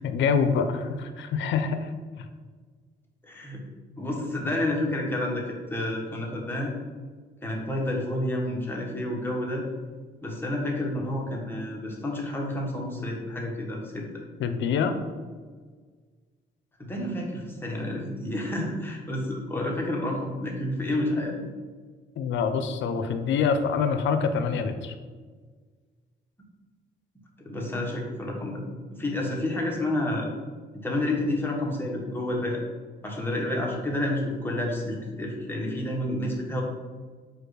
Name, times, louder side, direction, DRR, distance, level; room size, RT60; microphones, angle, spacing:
voice 1, 0.0-1.9 2.2-2.3 14.4-14.9 22.2-24.9, left 6 dB, 70° left, 8 dB, 0.5 m, -25 dB
voice 2, 3.3-3.7 4.0-6.7 7.4-9.6 10.2-14.2 16.8-21.4 27.4-30.3 30.8-32.6 33.0-36.6, left 1 dB, 10° left, -2 dB, 1.1 m, -30 dB
4.5 x 2.4 x 4.8 m, 1.5 s
cardioid pair, 90°, 20 cm